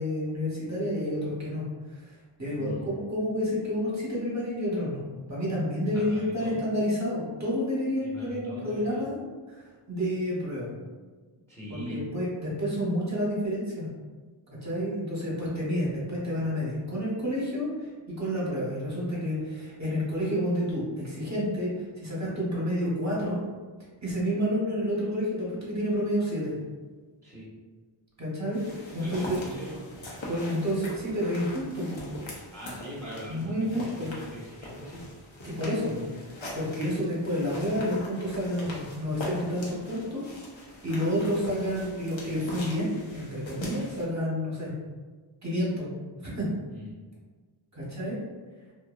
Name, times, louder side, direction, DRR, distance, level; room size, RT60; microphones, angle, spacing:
voice 1, 0.0-1.6 1.9-5.0 5.3-9.2 9.5-10.7 11.7-13.9 14.6-17.9 18.2-23.4 24.0-26.5 28.2-28.6 28.9-29.4 30.3-32.0 33.3-34.1 35.4-40.2 40.5-44.7 45.4-45.9 46.2-46.5 47.7-48.2, equal, 35° right, -6 dB, 0.9 m, -29 dB
voice 2, 2.6-2.9 5.9-6.6 8.0-9.0 11.5-12.0 27.2-27.5 29.0-30.1 32.5-35.1 46.7-47.1, equal, 5° left, -7 dB, 0.8 m, -41 dB
sound 1, 28.5-44.0, left 1 dB, 70° left, 0.8 m, -42 dB
2.6 x 2.2 x 2.3 m, 1.4 s
wide cardioid pair, 50°, 48 cm